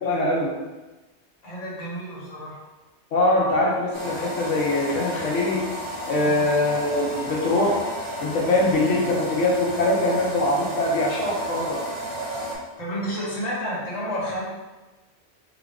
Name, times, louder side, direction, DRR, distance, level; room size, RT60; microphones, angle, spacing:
voice 1, 0.0-0.6 3.1-5.7 6.1-7.8 8.2-11.8, left 2 dB, 80° left, -2 dB, 1.2 m, -23 dB
voice 2, 1.4-2.6 6.2-6.5 12.8-14.4, equal, 35° left, -7 dB, 1.3 m, -30 dB
sound 1, 3.9-12.6, equal, 25° right, 0.8 m, -32 dB
3.9 x 2.5 x 3.6 m, 1.1 s
omnidirectional pair, 1.2 m